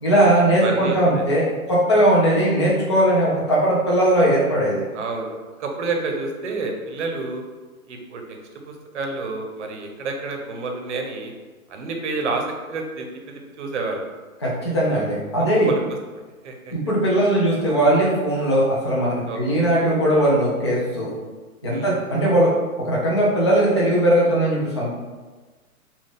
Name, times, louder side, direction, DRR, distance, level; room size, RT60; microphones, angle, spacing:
voice 1, 0.0-4.8 14.4-15.7 16.7-21.1 21.6-22.5 22.8-24.9, right 1 dB, 20° left, -6 dB, 0.4 m, -19 dB
voice 2, 0.5-1.3 4.9-7.4 7.9-8.4 8.6-11.3 11.7-14.0 15.5-15.8 16.4-16.7 19.3-19.7 21.7-21.9, right 3 dB, 50° right, 2 dB, 0.7 m, -29 dB
3.7 x 2.4 x 3.7 m, 1.3 s
hypercardioid pair, 150°, 44 cm